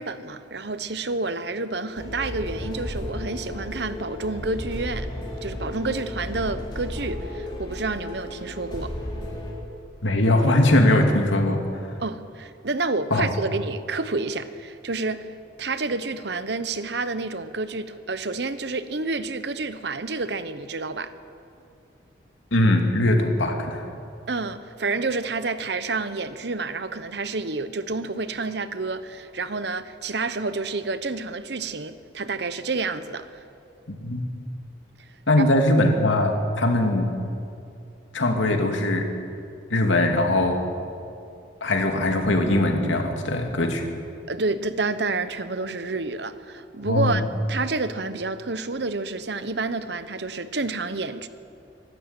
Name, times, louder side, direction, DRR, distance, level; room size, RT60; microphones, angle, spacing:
voice 1, 0.0-5.1 5.4-8.9 12.0-15.3 15.6-21.1 24.3-33.4 35.4-35.5 44.3-47.2 47.5-51.3, right 3 dB, 60° right, 0.9 m, -29 dB
sound 1, 2.0-9.5, left 1 dB, 25° left, 3.9 m, -34 dB
voice 2, 10.0-11.6 13.1-13.3 22.5-23.8 34.0-34.2 35.3-37.2 38.1-39.1 39.7-40.7 41.6-43.9 46.8-47.2, left 1 dB, 90° left, 2.6 m, -21 dB
24.5 x 12.5 x 8.9 m
head